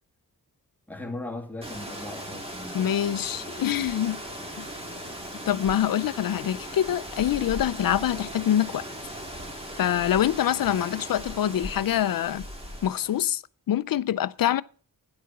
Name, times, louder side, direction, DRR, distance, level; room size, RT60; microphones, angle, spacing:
voice 1, 0.9-2.9, left 2 dB, 5° left, 1.9 m, -38 dB
sound 1, 1.6-13.3, equal, 15° right, 2.1 m, -38 dB
voice 2, 2.7-4.2 4.6-4.7 5.5-8.8 9.8-12.4 12.8-14.6, left 11 dB, 75° left, 0.5 m, -25 dB
10.5 x 8.4 x 5.9 m
wide cardioid pair, 160°, 34 cm